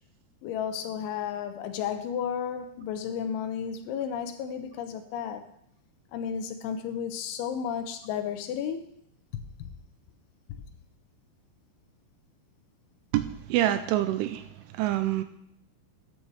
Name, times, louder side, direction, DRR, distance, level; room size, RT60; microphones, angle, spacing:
voice 1, 0.4-5.5 6.1-8.9 9.3-9.7, left 8 dB, 85° left, 3.1 m, -33 dB
voice 2, 13.1-14.4 14.8-15.2, right 13 dB, 85° right, 3.0 m, -26 dB
14.0 x 9.6 x 3.3 m
omnidirectional pair, 5.6 m